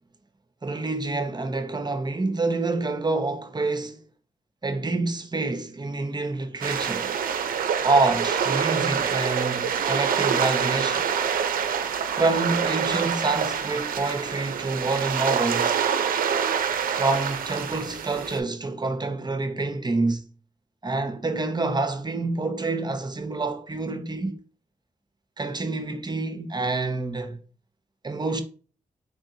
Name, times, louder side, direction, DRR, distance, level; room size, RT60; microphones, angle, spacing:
voice 1, 0.6-4.0 4.6-7.2 7.8-11.1 12.1-15.8 16.9-20.3 20.8-24.4 25.4-27.4 28.0-28.4, right 3 dB, 30° right, 0.7 m, -27 dB
sound 1, 6.6-18.4, right 7 dB, 80° right, 0.4 m, -26 dB
3.7 x 3.5 x 2.7 m
cardioid pair, 50°, 14 cm